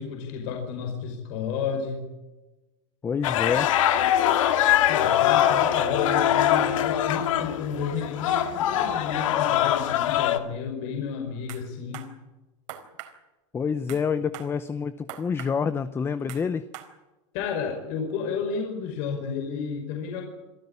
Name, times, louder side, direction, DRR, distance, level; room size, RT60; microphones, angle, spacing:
voice 1, 0.0-2.0 4.8-12.1 17.3-20.2, left 6 dB, 50° left, 3 dB, 5.3 m, -31 dB
voice 2, 3.0-3.7 13.5-16.6, left 6 dB, 15° left, 13 dB, 0.7 m, -27 dB
sound 1, 3.2-10.4, left 11 dB, 75° left, 2.3 m, -23 dB
sound 2, 11.5-11.6 11.9-12.1 12.7-13.1 13.9-14.0 14.3-14.5 15.1-15.5 16.3-16.4 16.7-16.9, right 13 dB, 65° right, 4.3 m, -40 dB
26.5 x 14.0 x 9.8 m, 1.1 s
supercardioid pair, 150°, 17 cm